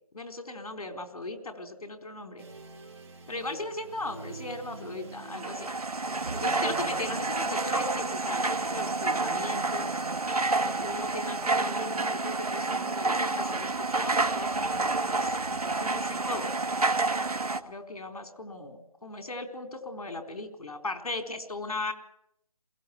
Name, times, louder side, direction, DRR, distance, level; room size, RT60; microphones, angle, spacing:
voice 1, 0.1-2.4 3.3-5.7 6.3-10.0 10.6-16.5 17.7-21.9, left 2 dB, 85° left, 6 dB, 4.2 m, -38 dB
sound 1, 2.4-16.2, right 4 dB, 45° right, 5.6 m, -48 dB
sound 2, 5.2-17.6, right 3 dB, 85° right, 2.2 m, -29 dB
22.0 x 17.5 x 9.6 m, 0.77 s
figure-of-eight pair, 170°, 19 cm